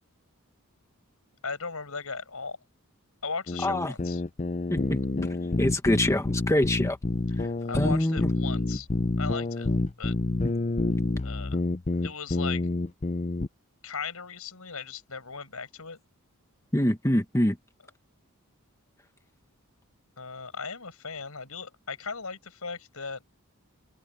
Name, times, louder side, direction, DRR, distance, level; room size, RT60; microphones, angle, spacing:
voice 1, 1.4-2.6 3.2-4.2 7.7-8.9 9.2-9.7 10.0-10.2 11.2-11.6 12.0-12.6 13.8-16.0 20.2-23.2, left 5 dB, 80° left, 5.5 m, -37 dB
sound 1, 3.5-13.5, left 2 dB, 30° left, 0.6 m, -28 dB
voice 2, 3.6-3.9 4.7-5.0 5.3-7.0 7.4-7.5 7.7-8.3 10.4-10.5 16.7-17.6, left 1 dB, 15° left, 1.5 m, -25 dB
open air
head